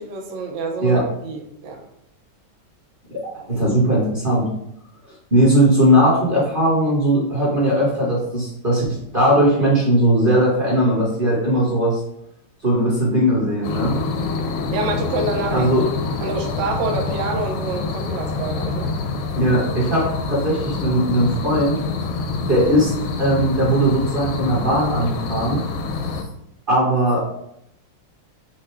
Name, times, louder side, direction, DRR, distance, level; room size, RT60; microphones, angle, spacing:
voice 1, 0.0-1.8 14.7-15.9 16.2-19.0, right 3 dB, 75° right, 2 dB, 0.7 m, -27 dB
voice 2, 3.3-4.5 5.3-8.8 9.1-12.0 12.6-13.9 15.5-15.8 19.4-21.8 22.5-22.9 23.2-25.6 26.7-27.2, right 1 dB, 30° right, -5 dB, 1.0 m, -18 dB
sound 1, 13.6-26.2, left 4 dB, 80° left, 1.4 m, -26 dB
4.5 x 2.3 x 4.4 m, 0.77 s
omnidirectional pair, 2.3 m